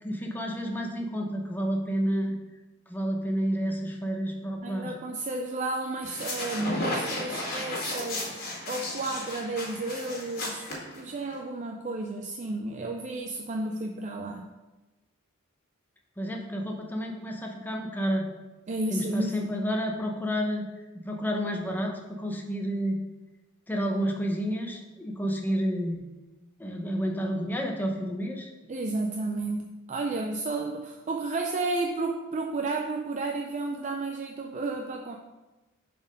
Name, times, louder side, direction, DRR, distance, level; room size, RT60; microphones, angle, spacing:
voice 1, 0.0-2.4 2.9-4.9 16.2-18.3 18.9-20.7 21.0-23.0 23.7-26.0 26.6-28.5, equal, 10° left, 1 dB, 0.8 m, -30 dB
voice 2, 4.6-14.5 18.7-19.6 28.7-35.2, right 2 dB, 35° right, 3 dB, 0.4 m, -32 dB
sound 1, 6.0-11.4, left 1 dB, 50° left, 2.0 m, -34 dB
6.9 x 4.3 x 5.2 m, 1.1 s
head